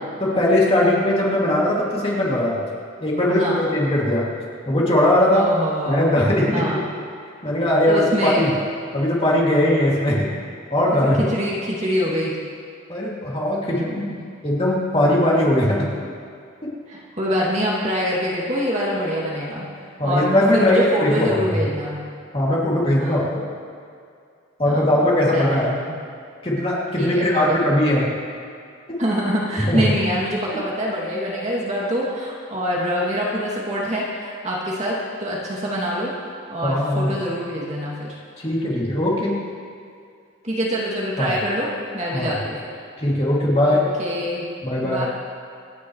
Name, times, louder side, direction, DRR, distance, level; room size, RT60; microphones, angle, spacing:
voice 1, 0.2-2.6 3.0-4.3 4.7-5.5 5.9-6.8 7.4-8.5 8.9-10.4 10.7-11.3 12.9-14.0 14.4-15.9 20.0-21.6 22.3-23.4 24.6-25.7 26.4-28.1 28.9-29.0 29.7-29.9 36.6-37.2 38.4-39.4 41.2-41.3 42.1-42.3 43.0-43.9 44.6-45.1, left 1 dB, 25° left, -5 dB, 2.5 m, -20 dB
voice 2, 3.3-3.7 5.3-6.1 6.5-6.8 7.9-8.4 10.9-12.4 13.7-14.1 16.9-19.7 20.0-22.1 23.0-23.4 24.6-25.0 25.3-26.0 27.0-27.6 29.0-36.1 36.5-38.2 40.4-42.6 43.6-44.5 44.8-45.1, equal, 35° right, -5 dB, 2.5 m, -25 dB
27.0 x 10.5 x 3.2 m, 2.3 s
head